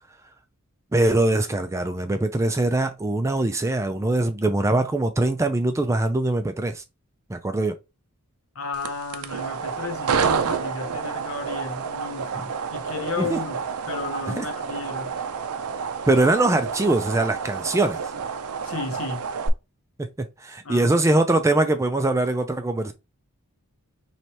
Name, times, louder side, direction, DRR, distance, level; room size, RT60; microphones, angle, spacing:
voice 1, 0.9-6.8 7.3-7.8 13.2-13.4 14.3-14.5 16.1-18.0 20.0-20.1 20.4-22.9, right 2 dB, 15° right, 0.3 m, -22 dB
voice 2, 8.5-15.1 18.6-19.3 20.6-21.0, left 4 dB, 65° left, 0.8 m, -33 dB
sound 1, 8.7-19.5, right 6 dB, 85° right, 0.5 m, -29 dB
4.4 x 3.2 x 2.7 m
head